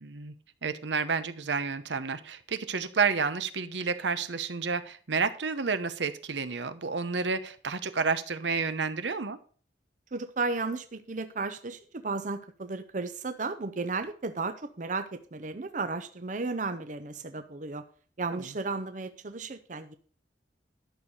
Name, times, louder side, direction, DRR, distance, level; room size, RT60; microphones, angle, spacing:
voice 1, 0.0-0.3 0.6-9.4 18.3-18.4, right 5 dB, 80° right, 11 dB, 0.9 m, -30 dB
voice 2, 10.1-17.8 18.2-19.9, right 3 dB, 45° right, 10 dB, 0.6 m, -34 dB
11.5 x 6.5 x 5.4 m, 0.44 s
head